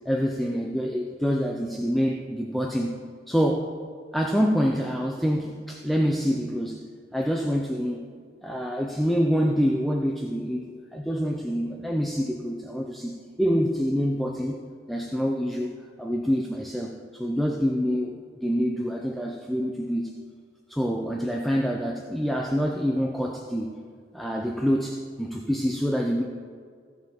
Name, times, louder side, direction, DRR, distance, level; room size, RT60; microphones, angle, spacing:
voice 1, 0.1-3.0 3.3-3.7 4.1-6.8 7.1-8.1 8.4-14.6 14.9-20.1 20.7-23.7 24.1-26.2, equal, ahead, 1 dB, 0.5 m, -26 dB
16.0 x 5.8 x 4.4 m, 2.1 s
head